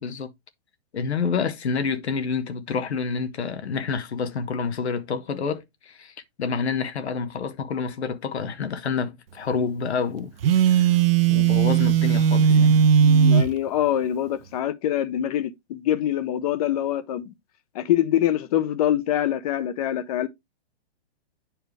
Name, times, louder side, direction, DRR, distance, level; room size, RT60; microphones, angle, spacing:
voice 1, 0.9-10.3 10.7-11.0 11.3-12.8, left 5 dB, 90° left, 1.3 m, -28 dB
Telephone, 10.4-13.5, right 8 dB, 60° right, 0.7 m, -17 dB
voice 2, 12.5-17.3 17.7-20.3, left 11 dB, 35° left, 0.8 m, -25 dB
9.1 x 4.6 x 3.3 m
hypercardioid pair, 155°, 32 cm